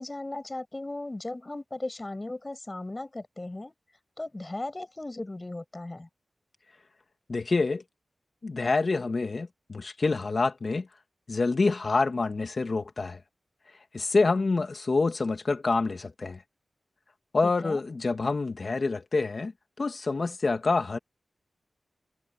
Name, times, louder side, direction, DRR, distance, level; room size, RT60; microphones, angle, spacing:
voice 1, 0.0-3.7 4.2-6.1 17.4-17.8, left 2 dB, 25° left, 7.7 m, -37 dB
voice 2, 7.3-7.8 8.4-10.9 11.3-13.2 13.9-16.4 17.3-19.5 19.8-21.0, left 3 dB, 55° left, 2.7 m, -27 dB
wide cardioid pair, 70°, 0 cm